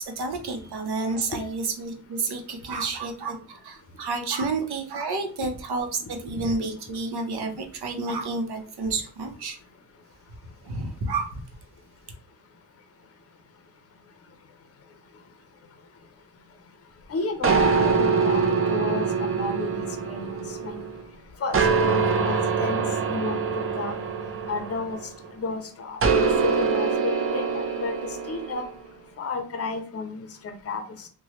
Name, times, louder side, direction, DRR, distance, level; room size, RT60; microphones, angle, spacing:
voice 1, 0.2-9.6 10.6-11.4, right 3 dB, 70° right, 5 dB, 0.8 m, -30 dB
voice 2, 17.1-20.9 21.4-24.0 24.5-25.0 25.4-27.9 28.3-28.6 29.2-31.1, left 3 dB, 35° left, 6 dB, 0.6 m, -32 dB
sound 1, 17.4-21.0 21.5-25.3 26.0-28.7, right 5 dB, 35° right, 0.5 m, -24 dB
2.9 x 2.3 x 2.9 m, 0.42 s
cardioid pair, 85°, 41 cm